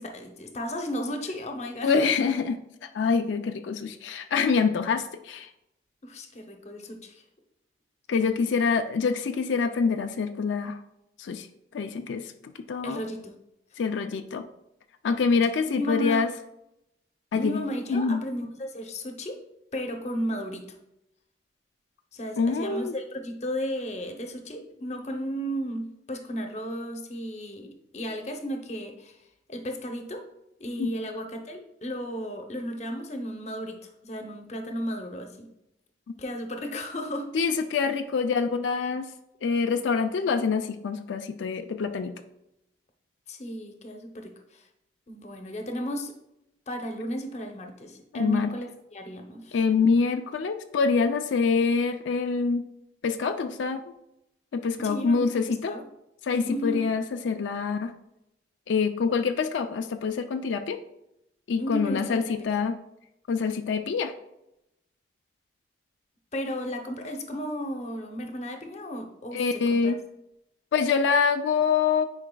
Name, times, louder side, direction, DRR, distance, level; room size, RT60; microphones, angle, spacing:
voice 1, 0.0-2.1 6.0-7.2 12.8-13.3 13.7-13.8 15.3-16.2 17.4-19.4 19.7-20.6 22.1-29.2 29.5-30.2 30.6-33.8 34.0-35.5 36.2-37.3 43.3-44.7 45.1-46.1 46.7-49.6 54.8-55.8 56.5-56.8 61.6-62.3 66.3-69.9, equal, 35° left, 4 dB, 0.7 m, -34 dB
voice 2, 1.8-2.6 2.9-5.5 8.1-10.8 11.2-11.5 11.7-12.3 12.7-13.0 13.8-14.4 15.0-16.3 17.3-17.6 17.9-18.2 22.4-22.9 30.8-30.9 37.3-39.1 39.4-42.1 48.1-48.5 49.5-52.6 53.0-53.8 54.5-55.7 56.3-57.9 58.7-60.8 61.5-62.8 63.3-64.1 69.3-70.0 70.7-72.1, left 5 dB, 85° left, 7 dB, 0.4 m, -25 dB
9.8 x 4.8 x 2.3 m, 0.85 s
head